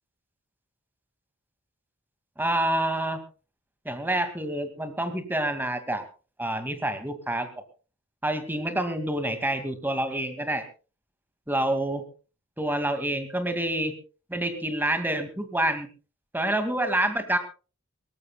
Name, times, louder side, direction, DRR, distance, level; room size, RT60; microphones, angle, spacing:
voice 1, 2.4-3.2 3.9-6.0 6.4-7.5 8.2-10.6 11.5-12.0 12.6-13.9 14.3-15.9 16.3-17.4, right 1 dB, 10° right, 8 dB, 2.2 m, -27 dB
22.5 x 19.0 x 2.3 m, 0.34 s
head